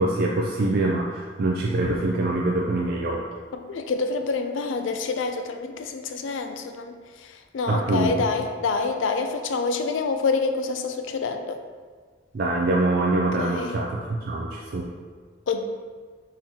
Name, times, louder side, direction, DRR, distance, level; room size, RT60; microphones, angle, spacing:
voice 1, 0.0-3.2 7.7-8.2 12.3-14.9, right 2 dB, 55° right, -2 dB, 0.4 m, -24 dB
voice 2, 3.5-11.6 13.4-13.7 15.5-15.6, left 4 dB, 85° left, 6 dB, 0.4 m, -27 dB
4.4 x 3.7 x 2.8 m, 1.5 s
head